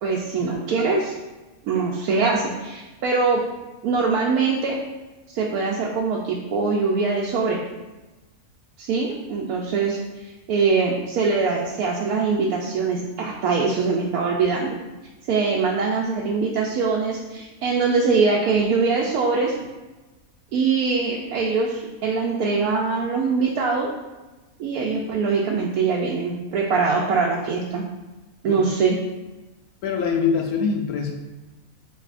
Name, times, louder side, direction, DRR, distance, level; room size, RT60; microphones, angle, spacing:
voice 1, 0.0-1.2 1.6-3.4 3.8-4.8 5.3-7.6 8.8-14.8 15.3-19.5 20.5-23.9 24.6-27.8 28.4-29.0, right 4 dB, 85° right, -2 dB, 1.1 m, -23 dB
voice 2, 29.8-31.1, left 6 dB, 80° left, 2 dB, 1.1 m, -24 dB
7.5 x 2.7 x 2.5 m, 1.1 s
omnidirectional pair, 1.6 m